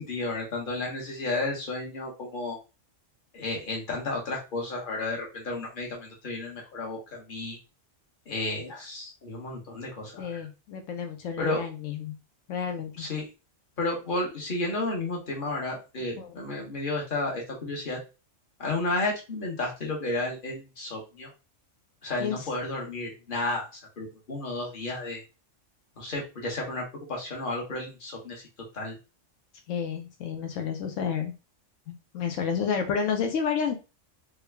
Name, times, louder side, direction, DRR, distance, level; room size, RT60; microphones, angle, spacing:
voice 1, 0.0-2.6 3.3-7.6 8.3-10.5 11.4-11.7 13.0-13.3 13.8-18.0 18.6-21.3 22.0-23.7 24.0-25.2 26.0-28.4 28.7-28.9, left 2 dB, 45° left, -1 dB, 1.3 m, -32 dB
voice 2, 10.2-12.2 12.5-13.1 16.2-16.4 22.2-22.5 29.7-31.3 31.9-33.7, left 7 dB, 85° left, 5 dB, 1.0 m, -30 dB
3.5 x 2.3 x 3.3 m, 0.30 s
omnidirectional pair, 1.3 m